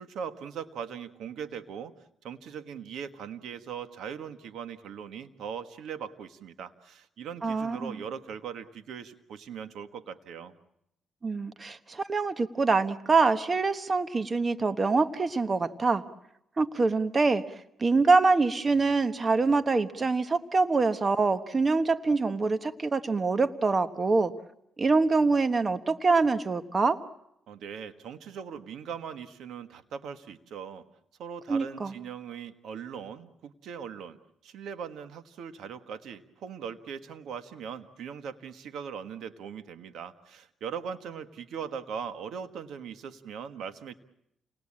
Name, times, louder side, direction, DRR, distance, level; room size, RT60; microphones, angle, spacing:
voice 1, 0.0-1.9 2.2-10.5 27.5-30.8 31.2-34.2 34.4-43.9, right 7 dB, 75° right, 9 dB, 1.5 m, -40 dB
voice 2, 7.4-8.0 11.2-16.0 16.6-17.4 17.8-24.3 24.8-27.0 31.5-31.9, right 3 dB, 30° right, 10 dB, 1.2 m, -25 dB
29.5 x 19.5 x 8.7 m, 0.81 s
cardioid pair, 90°, 0 cm